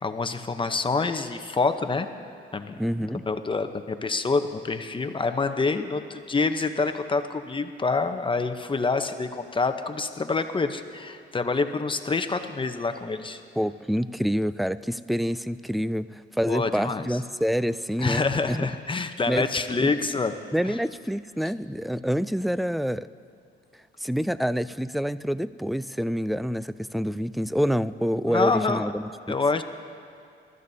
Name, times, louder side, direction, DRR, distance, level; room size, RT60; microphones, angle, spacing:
voice 1, 0.0-2.1 2.5-2.8 3.3-13.4 16.5-17.1 18.0-20.3 20.6-20.7 28.3-28.9 29.3-29.6, left 4 dB, 25° left, 8 dB, 0.8 m, -26 dB
voice 2, 2.8-3.2 13.6-18.7 19.0-19.4 19.8-19.9 20.5-23.1 24.0-29.4, equal, ahead, 15 dB, 0.3 m, -27 dB
26.5 x 13.5 x 2.8 m, 2.4 s
cardioid pair, 90°, 20 cm